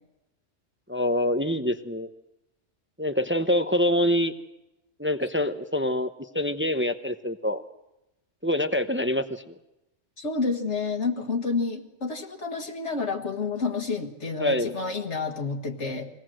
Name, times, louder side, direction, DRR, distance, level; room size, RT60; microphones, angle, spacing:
voice 1, 0.9-2.1 3.0-4.3 5.0-6.1 6.3-7.6 8.4-9.5 14.4-14.7, left 1 dB, 10° right, 8 dB, 0.7 m, -25 dB
voice 2, 10.2-16.1, left 4 dB, 65° left, 3 dB, 1.8 m, -29 dB
23.5 x 18.0 x 7.7 m, 0.95 s
omnidirectional pair, 1.3 m